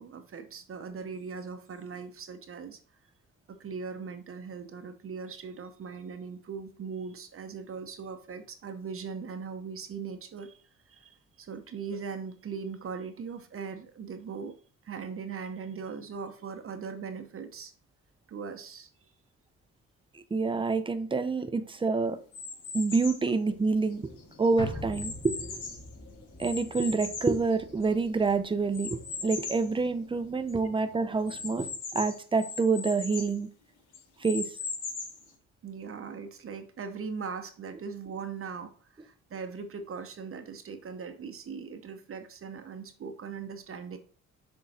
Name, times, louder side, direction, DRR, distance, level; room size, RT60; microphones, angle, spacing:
voice 1, 0.0-2.8 3.5-10.6 10.9-14.6 14.8-17.7 18.3-19.1 35.6-44.0, right 5 dB, 45° right, 7 dB, 0.9 m, -40 dB
voice 2, 20.1-22.2 22.7-24.1 24.4-25.6 26.4-33.5 34.2-34.5, right 4 dB, 15° right, 11 dB, 0.7 m, -27 dB
sound 1, 22.3-23.3 23.9-25.9 26.4-28.1 28.7-29.7 30.2-30.3 30.5-30.6 31.3-33.4 33.9-35.3, left 4 dB, 80° left, 1.8 m, -39 dB
sound 2, 23.4-31.7, left 2 dB, 35° left, 2.6 m, -55 dB
sound 3, 24.6-29.0 29.4-29.5, left 1 dB, 15° left, 1.2 m, -43 dB
6.5 x 3.8 x 4.2 m, 0.41 s
cardioid pair, 90°, 30 cm